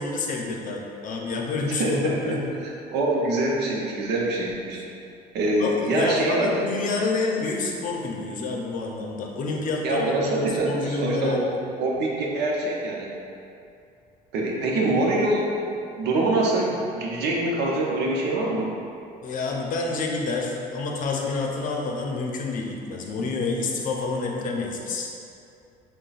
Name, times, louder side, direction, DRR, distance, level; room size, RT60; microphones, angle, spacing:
voice 1, 0.0-2.5 5.6-11.5 19.2-25.1, left 3 dB, 50° left, 0 dB, 0.6 m, -28 dB
voice 2, 1.7-2.4 2.6-4.8 5.3-6.7 9.8-11.5 11.8-13.1 14.3-15.5 15.9-18.7, right 2 dB, 85° right, -2 dB, 0.7 m, -24 dB
6.4 x 2.2 x 2.4 m, 2.5 s
cardioid pair, 110°, 17 cm